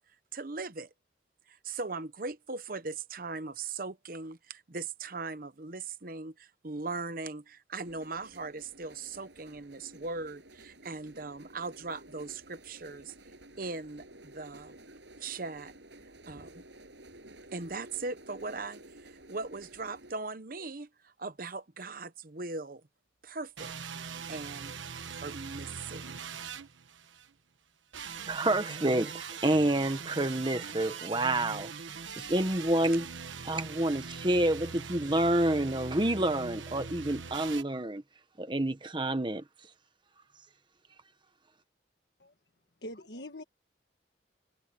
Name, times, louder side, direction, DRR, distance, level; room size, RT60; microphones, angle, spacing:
voice 1, 0.3-0.9 1.5-13.1 13.6-14.7 15.2-15.7 16.3-16.5 17.5-22.8 23.2-23.7 24.3-24.7 25.1-26.2, right 3 dB, 50° right, 1.0 m, -39 dB
sound 1, 7.8-20.1, right 1 dB, 70° right, 7.9 m, -53 dB
sound 2, 23.6-27.3 27.9-37.6, right 6 dB, 90° right, 1.3 m, -42 dB
voice 2, 28.3-31.7 32.2-33.1 33.4-38.0 38.4-39.4, right 1 dB, 25° right, 1.1 m, -28 dB
voice 3, 42.8-43.4, left 1 dB, 60° left, 1.6 m, -43 dB
head